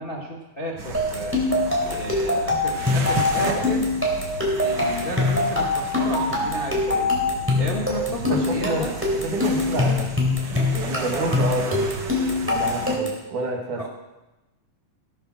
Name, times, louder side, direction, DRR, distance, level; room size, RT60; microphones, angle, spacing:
voice 1, 0.0-1.4 1.8-3.9 4.6-7.2 7.6-8.9 10.8-11.4 13.7-13.9, equal, 40° left, -1 dB, 0.7 m, -32 dB
sound 1, 0.8-13.0, right 3 dB, 50° right, 1.3 m, -34 dB
sound 2, 0.9-13.3, left 2 dB, 5° right, 3.0 m, -23 dB
voice 2, 7.5-7.8 8.1-8.8 9.2-10.1 10.7-11.9 12.4-13.9, right 2 dB, 70° right, 1 dB, 3.5 m, -28 dB
16.5 x 8.8 x 6.2 m, 1.0 s
omnidirectional pair, 3.7 m